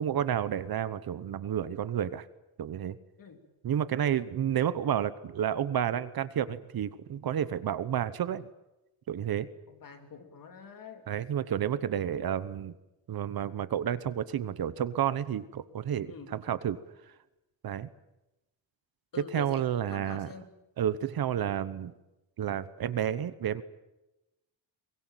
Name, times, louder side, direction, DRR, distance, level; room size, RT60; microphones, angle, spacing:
voice 1, 0.0-2.3 2.6-3.0 3.6-8.4 9.1-9.5 11.1-12.7 13.1-16.8 17.6-17.9 19.3-20.3 20.8-21.9 22.4-23.6, right 9 dB, 50° right, 15 dB, 1.0 m, -30 dB
voice 2, 9.7-11.1 16.1-16.3 19.1-20.5, left 6 dB, 45° left, 6 dB, 3.1 m, -46 dB
23.0 x 21.5 x 9.1 m, 0.97 s
cardioid pair, 160°, 46 cm